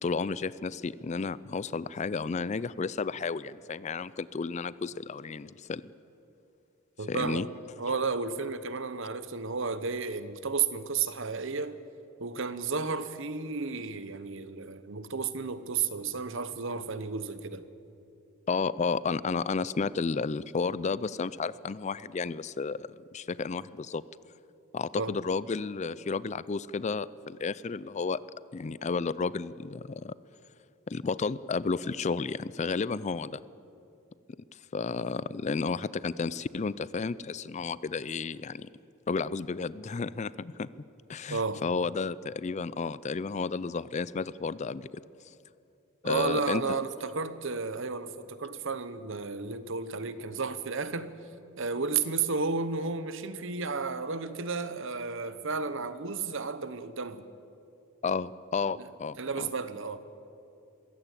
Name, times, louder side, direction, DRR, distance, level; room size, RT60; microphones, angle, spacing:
voice 1, 0.0-5.8 7.1-7.5 18.5-24.0 24.7-28.2 28.5-30.1 30.9-33.4 34.7-38.7 39.1-40.7 41.1-44.9 46.0-46.6 58.0-59.5, left 4 dB, 35° left, 0.4 m, -32 dB
voice 2, 7.0-7.5 7.8-11.8 12.2-17.7 24.9-25.1 41.3-41.6 46.0-51.1 51.6-57.3 59.2-60.2, right 4 dB, 60° right, 1.0 m, -32 dB
22.0 x 16.0 x 8.3 m
head